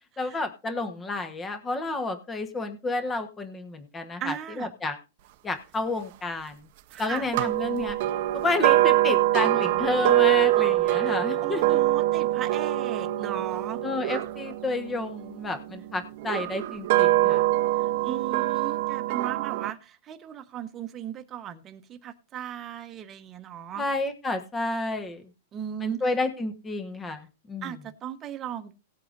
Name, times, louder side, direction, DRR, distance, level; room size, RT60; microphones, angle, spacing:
voice 1, 0.2-5.0 5.4-6.6 7.0-8.0 8.4-11.8 13.8-17.5 23.8-25.2 25.8-27.7, left 2 dB, 15° left, 8 dB, 1.2 m, -30 dB
voice 2, 4.2-4.7 6.9-7.3 11.0-13.8 17.8-23.8 25.5-26.0 27.6-28.7, right 10 dB, 25° right, 7 dB, 1.1 m, -37 dB
sound 1, 7.3-15.5 16.2-19.7, right 15 dB, 50° right, 0.8 m, -24 dB
18.0 x 8.4 x 2.6 m, 0.29 s
supercardioid pair, 155°, 0 cm